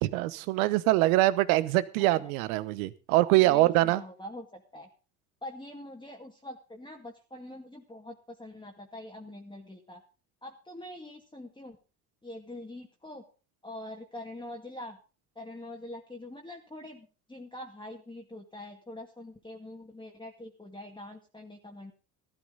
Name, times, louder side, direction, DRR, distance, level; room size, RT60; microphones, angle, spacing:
voice 1, 0.0-4.0, right 17 dB, 80° right, 15 dB, 1.1 m, -24 dB
voice 2, 3.4-4.9 5.4-10.0 10.4-11.8 12.2-13.2 13.6-15.0 15.4-21.9, left 1 dB, 10° left, 1 dB, 2.2 m, -44 dB
14.5 x 12.5 x 4.0 m, 0.35 s
hypercardioid pair, 75°, 42 cm